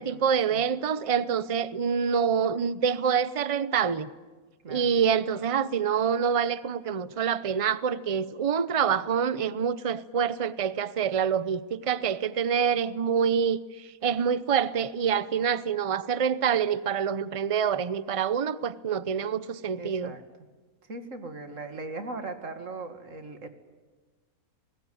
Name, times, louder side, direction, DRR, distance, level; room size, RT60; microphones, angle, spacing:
voice 1, 0.0-4.1 4.7-20.1, right 7 dB, 30° right, 0.6 m, -26 dB
voice 2, 4.6-5.0 19.7-20.2 20.8-23.5, right 3 dB, 60° right, 2.5 m, -39 dB
24.0 x 20.5 x 9.4 m
omnidirectional pair, 1.5 m